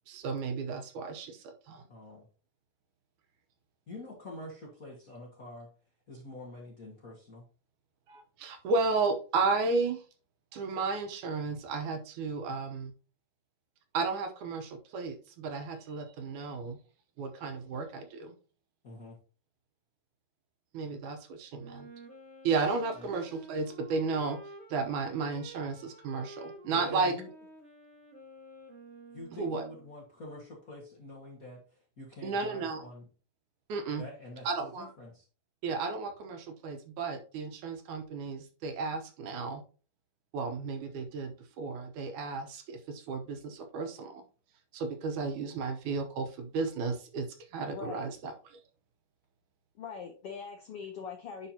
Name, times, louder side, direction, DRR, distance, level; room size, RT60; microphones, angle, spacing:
voice 1, 0.1-1.8 8.1-10.0 10.5-12.9 13.9-16.8 17.2-18.3 20.7-21.9 22.4-24.4 24.7-27.1 29.3-29.7 32.2-32.8 33.7-34.0 34.4-34.9 35.6-39.6 40.3-44.2 44.7-47.3 47.5-48.3, right 4 dB, 70° right, 6 dB, 2.3 m, -33 dB
voice 2, 1.9-2.2 3.9-5.7 6.1-7.4 18.8-19.2 22.9-23.1 26.7-27.3 29.1-31.6 32.0-33.1 34.0-35.2, left 1 dB, 40° left, -2 dB, 1.3 m, -46 dB
Wind instrument woodwind instrument, 21.5-29.9, right 1 dB, 30° right, 1.3 m, -51 dB
voice 3, 47.7-48.0 49.8-51.5, left 6 dB, 75° left, 3 dB, 1.4 m, -42 dB
10.0 x 4.5 x 2.8 m, 0.36 s
omnidirectional pair, 3.8 m